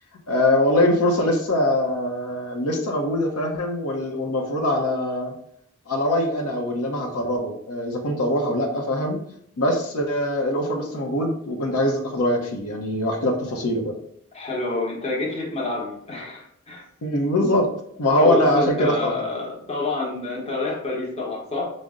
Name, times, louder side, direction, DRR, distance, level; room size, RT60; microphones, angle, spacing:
voice 1, 0.3-5.3 5.9-9.2 9.6-14.0 17.0-17.7 18.0-19.1, left 1 dB, 85° left, 1 dB, 0.7 m, -22 dB
voice 2, 14.3-16.8 18.2-21.6, left 2 dB, 25° left, -3 dB, 0.9 m, -27 dB
5.1 x 2.0 x 3.6 m, 0.69 s
head